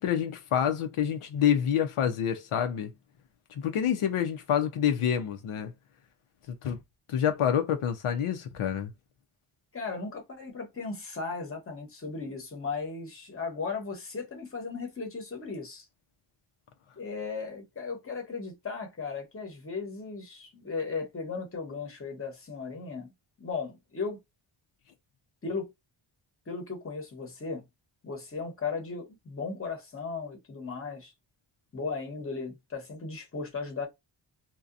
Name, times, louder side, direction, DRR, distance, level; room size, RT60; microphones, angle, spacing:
voice 1, 0.0-2.9 3.5-5.7 6.6-6.8 7.1-8.9, left 9 dB, 90° left, 0.7 m, -27 dB
voice 2, 9.7-15.9 17.0-23.1 23.4-24.2 25.4-25.7 26.5-27.7 28.0-31.1 31.7-33.9, left 4 dB, 25° left, 0.9 m, -36 dB
2.7 x 2.2 x 2.4 m
wide cardioid pair, 155°, 49 cm